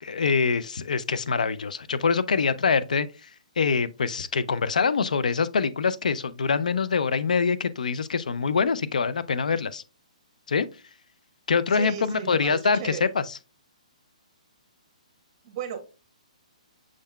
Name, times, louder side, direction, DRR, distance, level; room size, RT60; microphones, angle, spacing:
voice 1, 0.0-3.3 3.6-9.8 10.5-10.7 11.5-13.4, left 5 dB, 80° left, 0.4 m, -24 dB
voice 2, 11.7-13.0 15.4-15.9, right 8 dB, 35° right, 1.1 m, -35 dB
6.3 x 3.6 x 2.2 m
hypercardioid pair, 145°, 4 cm